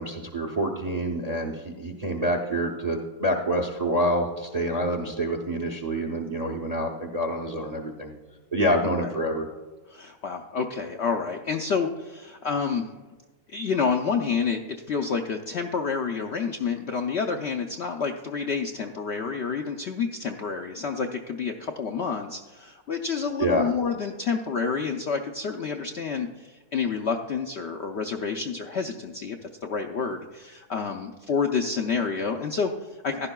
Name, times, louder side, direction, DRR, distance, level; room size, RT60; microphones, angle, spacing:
voice 1, 0.0-8.1 8.5-9.5 23.4-23.7, equal, 40° right, 3 dB, 0.5 m, -27 dB
voice 2, 9.9-12.9 13.5-33.3, left 5 dB, 70° left, 3 dB, 0.6 m, -29 dB
15.0 x 11.0 x 2.3 m, 1.2 s
omnidirectional pair, 1.7 m